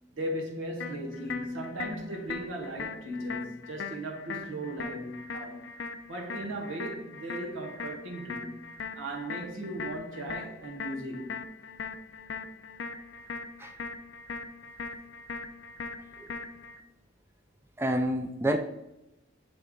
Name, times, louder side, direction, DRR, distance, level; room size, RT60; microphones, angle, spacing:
voice 1, 0.1-5.7 6.1-8.6 8.9-11.4, right 1 dB, 85° right, 1.3 m, -37 dB
sound 1, 0.8-16.8, left 5 dB, 65° left, 0.5 m, -40 dB
voice 2, 17.8-18.6, right 1 dB, 10° right, 0.3 m, -28 dB
8.0 x 3.3 x 3.7 m
head